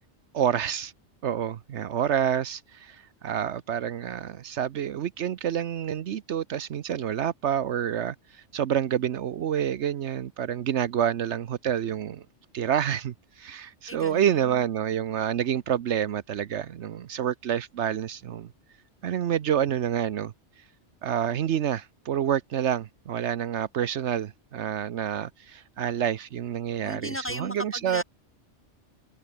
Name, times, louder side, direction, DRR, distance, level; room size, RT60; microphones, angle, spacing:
voice 1, 0.3-0.9 1.2-8.1 8.5-12.2 12.5-18.5 19.0-20.3 21.0-28.0, right 9 dB, 75° right, 1.1 m, -28 dB
voice 2, 13.9-14.6 26.7-28.0, equal, 10° left, 3.7 m, -36 dB
omnidirectional pair, 1.2 m